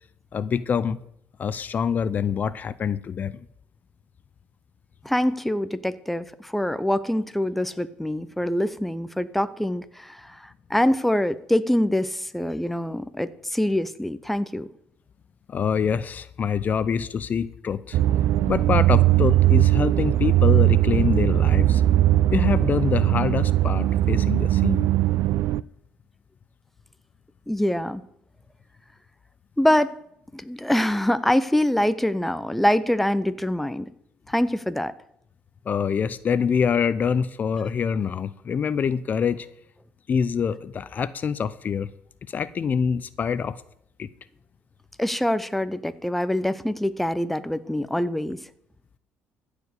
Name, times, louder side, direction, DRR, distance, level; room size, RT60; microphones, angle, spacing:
voice 1, 0.3-1.0 1.4-3.3 15.5-18.0 18.5-21.8 22.3-24.9 35.7-39.5 40.1-41.9 42.3-43.6 44.0-44.1, left 7 dB, 45° left, 16 dB, 0.5 m, -25 dB
voice 2, 5.0-14.7 27.5-28.0 29.6-30.0 30.3-33.9 34.3-34.9 45.0-48.4, left 1 dB, 5° left, 14 dB, 0.6 m, -24 dB
sound 1, 17.9-25.6, right 14 dB, 70° right, 0.3 m, -19 dB
14.5 x 5.0 x 8.2 m, 0.73 s
cardioid pair, 90°, 4 cm